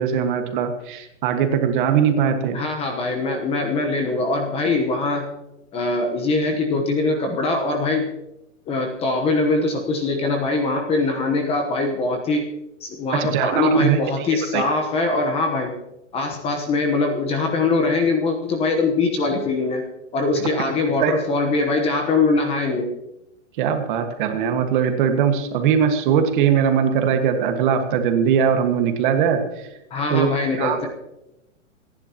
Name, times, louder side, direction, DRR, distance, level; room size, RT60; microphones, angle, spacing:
voice 1, 0.0-2.6 13.1-14.3 14.5-14.6 20.4-20.5 21.0-21.2 23.6-29.7 30.1-30.3 30.6-30.8, right 7 dB, 40° right, 6 dB, 1.7 m, -20 dB
voice 2, 2.5-5.3 5.7-8.1 8.7-12.5 12.8-15.8 16.1-19.9 20.1-22.9 29.9-30.9, left 3 dB, 15° left, 4 dB, 1.1 m, -22 dB
27.0 x 10.5 x 2.9 m, 0.92 s
hypercardioid pair, 155°, 39 cm